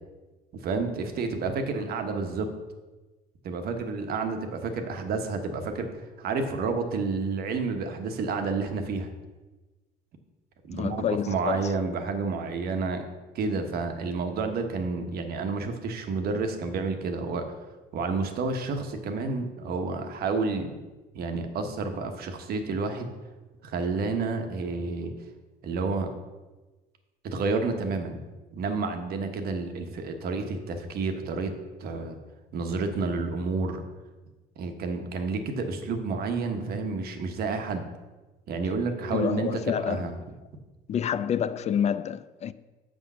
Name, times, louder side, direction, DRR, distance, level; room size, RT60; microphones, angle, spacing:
voice 1, 0.6-2.5 3.4-5.9 6.2-9.1 10.7-13.0 13.3-17.4 17.9-20.7 21.1-23.1 23.6-25.1 25.6-26.1 27.2-28.2 28.5-31.5 31.8-32.2 32.5-33.8 34.6-37.8 38.5-39.6 39.9-40.1, right 4 dB, 65° right, 1.1 m, -30 dB
voice 2, 10.7-11.7 39.1-40.1 40.9-42.5, left 8 dB, 40° left, 0.4 m, -28 dB
6.7 x 6.3 x 5.5 m
cardioid pair, 110°, 17 cm